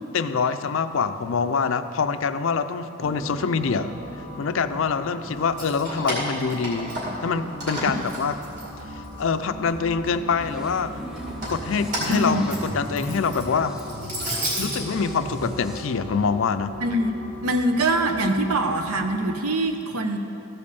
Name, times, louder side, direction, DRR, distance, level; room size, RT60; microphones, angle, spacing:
voice 1, 0.1-3.9 4.4-8.4 9.2-11.0 11.5-13.8 14.6-16.8, left 5 dB, 60° left, 11 dB, 0.4 m, -25 dB
sound 1, 3.0-19.4, equal, 55° right, 1.2 m, -39 dB
Keys jangling, 5.4-7.3 7.6-9.2 9.6-10.4 11.2-14.8, right 1 dB, 35° right, 2.4 m, -32 dB
sound 2, 10.4-15.9, equal, 5° right, 0.6 m, -38 dB
voice 2, 12.1-12.4 16.8-17.1 17.4-20.2, right 1 dB, 80° right, 6 dB, 0.8 m, -23 dB
14.0 x 5.3 x 6.9 m, 2.7 s
head